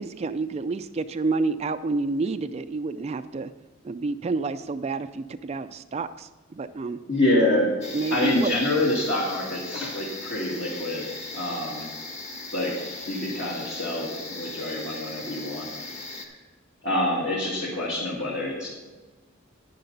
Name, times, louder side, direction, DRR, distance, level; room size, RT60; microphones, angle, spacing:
voice 1, 0.0-3.5 3.8-7.0 7.9-8.6, right 3 dB, 30° right, 11 dB, 0.4 m, -29 dB
voice 2, 7.0-7.7 8.1-11.8 12.5-12.7 13.1-15.7 16.1-16.4 16.8-18.7, left 1 dB, 55° left, -5 dB, 2.3 m, -26 dB
sound 1, 7.8-16.3, left 3 dB, 30° left, 1.5 m, -38 dB
11.0 x 10.0 x 4.0 m, 1.3 s
head